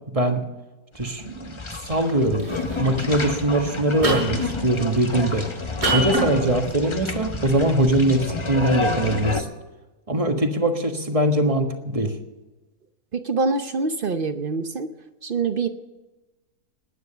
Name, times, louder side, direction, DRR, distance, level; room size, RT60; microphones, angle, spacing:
sound 1, 0.9-9.4, left 3 dB, 25° left, 0.8 m, -30 dB
voice 1, 0.9-2.5 2.8-5.5 5.9-9.5 10.1-12.1, right 1 dB, 25° right, 5 dB, 1.4 m, -22 dB
sound 2, 1.9-2.1 2.4-2.8 4.0-4.5 5.8-6.3, right 2 dB, 85° right, 7.3 m, -24 dB
voice 2, 13.1-14.9 15.2-15.7, right 4 dB, 45° right, 9 dB, 0.7 m, -25 dB
20.0 x 9.5 x 6.8 m, 1.1 s
omnidirectional pair, 1.7 m